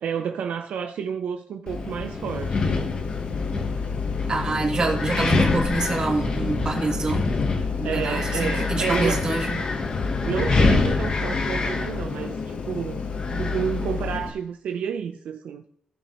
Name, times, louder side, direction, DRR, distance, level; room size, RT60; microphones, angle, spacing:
voice 1, 0.0-2.9 7.6-9.2 10.2-15.6, right 7 dB, 70° right, 0.6 m, -30 dB
Wind, 1.7-14.3, left 3 dB, 35° left, 1.1 m, -26 dB
sound 1, 2.3-14.2, left 7 dB, 80° left, 0.7 m, -33 dB
voice 2, 4.3-7.3 7.8-9.6, right 3 dB, 35° right, 2.4 m, -26 dB
16.0 x 6.9 x 3.0 m
cardioid pair, 130°, 2 cm